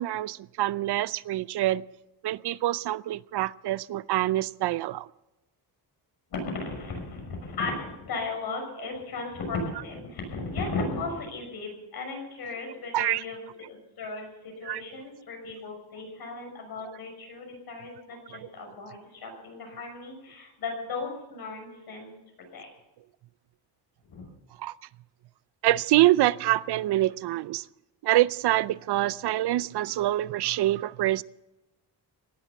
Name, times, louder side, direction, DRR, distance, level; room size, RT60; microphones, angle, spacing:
voice 1, 0.0-1.8 2.2-5.1 12.9-13.2 14.6-14.8 24.6-24.7 25.6-27.6 28.0-31.2, right 15 dB, 75° right, 0.6 m, -25 dB
voice 2, 6.3-13.4 13.7-22.1 22.5-22.7 24.1-24.3, left 3 dB, 65° left, 6.2 m, -36 dB
17.5 x 12.0 x 6.9 m
wide cardioid pair, 170°, 40 cm